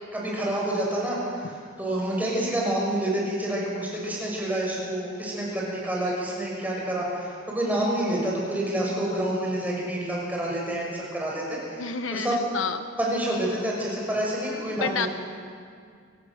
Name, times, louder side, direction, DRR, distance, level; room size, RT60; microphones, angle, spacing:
voice 1, 0.1-12.4 13.0-15.1, right 1 dB, 10° right, -3 dB, 6.0 m, -28 dB
voice 2, 11.8-12.8 14.8-15.1, left 5 dB, 75° left, 8 dB, 1.1 m, -29 dB
28.0 x 17.5 x 6.5 m, 2.2 s
head